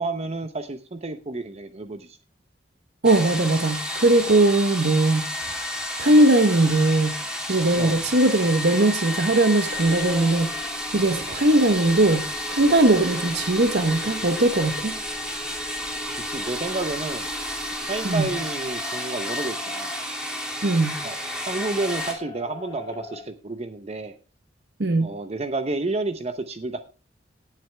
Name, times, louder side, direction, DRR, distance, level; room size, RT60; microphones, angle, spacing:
voice 1, 0.0-2.2 7.8-8.0 11.3-11.4 16.2-17.3 17.9-20.0 21.0-21.2 21.4-24.1 25.0-26.8, right 2 dB, 35° right, 0.8 m, -30 dB
sound 1, 3.0-22.1, left 1 dB, 5° right, 2.8 m, -31 dB
voice 2, 3.0-5.3 6.0-7.2 7.5-14.9 18.0-18.3 20.6-21.0 24.8-25.1, right 2 dB, 65° right, 1.0 m, -20 dB
sound 2, 9.7-23.2, left 1 dB, 25° left, 2.7 m, -41 dB
16.5 x 7.9 x 3.3 m
head